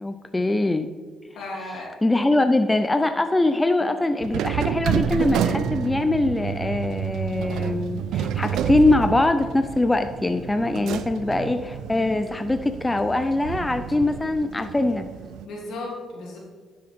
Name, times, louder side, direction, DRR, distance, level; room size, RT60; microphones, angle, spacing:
voice 1, 0.0-0.9 2.0-15.1, left 2 dB, 15° left, 8 dB, 0.5 m, -22 dB
voice 2, 1.3-1.9 2.2-2.3 15.4-16.4, left 2 dB, 80° left, -3 dB, 2.8 m, -35 dB
sound 1, 4.2-15.5, right 9 dB, 85° right, 0.4 m, -29 dB
11.0 x 6.4 x 3.6 m, 1.4 s
cardioid pair, 90°, 0 cm